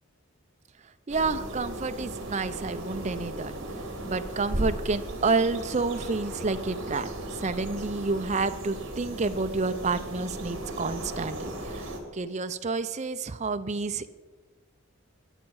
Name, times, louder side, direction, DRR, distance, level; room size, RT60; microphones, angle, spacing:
voice 1, 1.1-3.5 4.1-14.2, right 3 dB, 35° right, 11 dB, 0.5 m, -29 dB
sound 1, 1.1-12.0, right 1 dB, 60° right, 2.2 m, -36 dB
20.0 x 7.3 x 4.7 m, 1.4 s
head